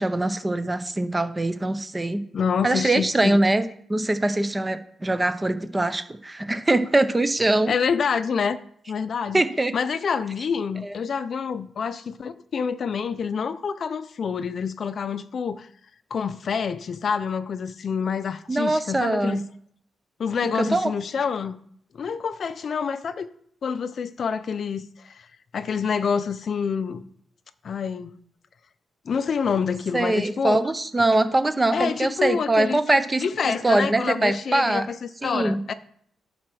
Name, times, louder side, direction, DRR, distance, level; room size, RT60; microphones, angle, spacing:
voice 1, 0.0-2.2 2.6-7.7 9.3-9.7 18.5-19.4 20.6-20.9 29.9-33.2 33.6-34.9 35.2-35.6, right 2 dB, 15° right, 0.7 m, -22 dB
voice 2, 2.3-3.4 7.7-8.6 8.9-9.4 9.7-15.7 16.1-19.4 20.2-21.6 21.9-23.3 23.6-25.3 25.5-27.0 27.6-28.2 29.1-30.7 31.7-32.8 33.2-35.7, left 6 dB, 50° left, 0.5 m, -27 dB
10.5 x 4.3 x 6.2 m
cardioid pair, 105°, 0 cm